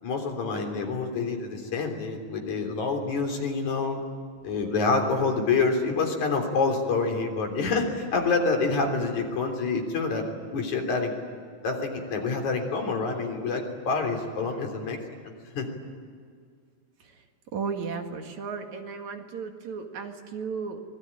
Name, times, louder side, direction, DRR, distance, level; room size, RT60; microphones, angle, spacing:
voice 1, 0.0-4.0 4.4-10.2 10.5-11.1 11.6-15.0 15.5-15.7, left 4 dB, 70° left, 3 dB, 4.8 m, -27 dB
voice 2, 17.5-20.8, right 5 dB, 65° right, 4 dB, 3.3 m, -34 dB
25.5 x 21.5 x 9.9 m, 2.1 s
omnidirectional pair, 3.5 m